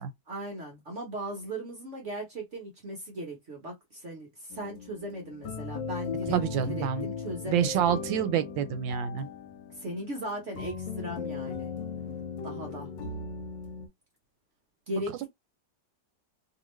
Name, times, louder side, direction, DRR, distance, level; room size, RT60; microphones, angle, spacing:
voice 1, 0.3-7.9 9.7-11.7 12.4-12.9 14.9-15.3, equal, 50° right, 1.0 m, -38 dB
sound 1, 4.5-13.9, left 5 dB, 80° left, 1.4 m, -38 dB
voice 2, 6.3-7.1 7.5-9.3, right 9 dB, 90° right, 1.4 m, -27 dB
2.9 x 2.7 x 3.1 m
omnidirectional pair, 2.0 m